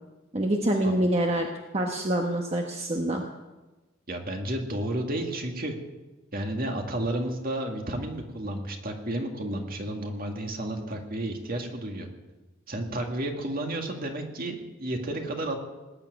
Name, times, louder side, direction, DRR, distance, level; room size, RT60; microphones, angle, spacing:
voice 1, 0.3-1.5 1.7-3.2, right 1 dB, 30° right, 1 dB, 1.2 m, -26 dB
voice 2, 4.1-5.8 6.3-12.1 12.7-15.6, right 1 dB, 45° right, 3 dB, 2.1 m, -32 dB
19.0 x 7.6 x 9.4 m, 1.1 s
head